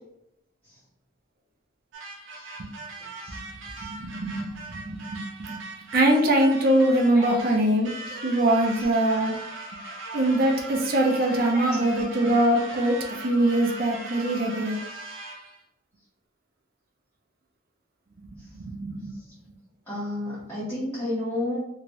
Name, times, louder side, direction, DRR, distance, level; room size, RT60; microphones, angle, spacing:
sound 1, 1.9-15.6, right 2 dB, 85° right, 0.7 m, -40 dB
voice 1, 3.9-5.6 5.9-7.9 8.2-9.4 10.1-14.8 18.5-19.1, right 1 dB, 50° right, 1 dB, 0.6 m, -23 dB
voice 2, 9.7-10.2 11.3-11.7 19.9-21.6, left 1 dB, 15° left, -12 dB, 1.0 m, -32 dB
3.0 x 2.9 x 2.6 m, 0.81 s
head